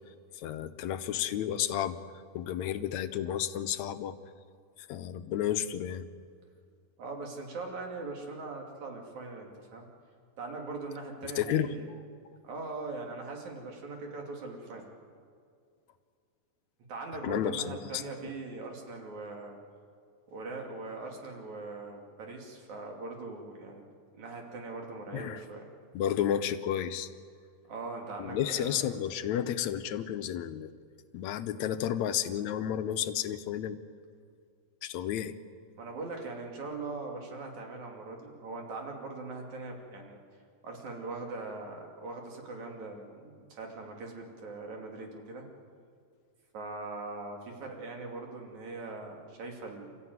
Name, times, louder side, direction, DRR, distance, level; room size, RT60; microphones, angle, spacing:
voice 1, 0.4-2.0 2.3-4.2 4.8-6.1 11.2-11.7 17.2-18.0 25.1-25.4 25.9-27.1 28.2-30.7 31.1-33.8 34.8-35.4, left 10 dB, 70° left, 10 dB, 2.0 m, -32 dB
voice 2, 7.0-9.9 10.4-12.0 12.4-14.9 16.9-19.6 20.3-23.9 24.1-25.7 27.7-28.8 35.8-40.2 40.6-45.5 46.5-50.0, right 3 dB, 65° right, 1 dB, 4.1 m, -41 dB
28.5 x 14.5 x 9.5 m, 2.3 s
omnidirectional pair, 3.6 m